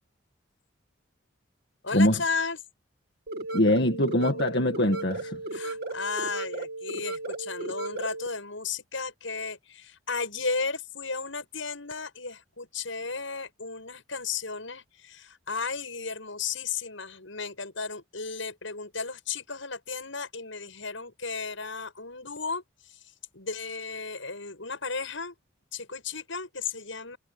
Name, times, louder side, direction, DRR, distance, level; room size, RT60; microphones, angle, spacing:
voice 1, 1.8-2.6 5.5-23.0 23.3-25.3 25.7-27.2, left 4 dB, 80° left, 7.5 m, -34 dB
sound 1, 3.3-8.3, right 2 dB, 50° right, 2.2 m, -35 dB
voice 2, 3.5-5.4, left 1 dB, 55° left, 2.0 m, -23 dB
head